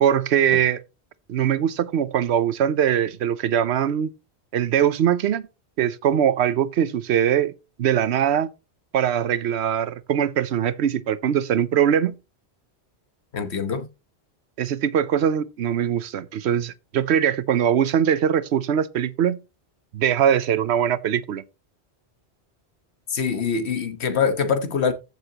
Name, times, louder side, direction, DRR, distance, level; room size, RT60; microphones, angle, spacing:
voice 1, 0.0-0.8 1.3-4.1 4.5-5.4 5.8-7.5 7.8-8.5 8.9-12.1 14.6-19.4 19.9-21.4, right 9 dB, 85° right, 1.0 m, -21 dB
voice 2, 13.3-13.8 23.1-24.9, left 6 dB, 80° left, 1.5 m, -24 dB
14.5 x 6.8 x 2.9 m
omnidirectional pair, 1.1 m